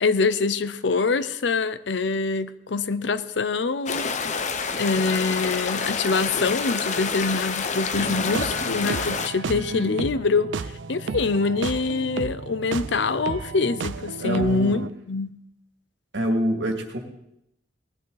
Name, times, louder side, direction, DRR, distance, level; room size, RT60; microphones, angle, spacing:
voice 1, 0.0-4.1 4.8-15.3, left 4 dB, 70° left, 15 dB, 0.6 m, -25 dB
sound 1, 3.9-9.3, left 5 dB, 40° left, 0.7 m, -28 dB
sound 2, 4.6-9.8, equal, ahead, 3.3 m, -43 dB
sound 3, 7.9-14.9, right 4 dB, 85° right, 0.5 m, -33 dB
voice 2, 9.5-10.0 14.2-14.9 16.1-17.0, right 1 dB, 70° right, 3 dB, 2.3 m, -26 dB
19.0 x 11.0 x 4.0 m, 0.82 s
head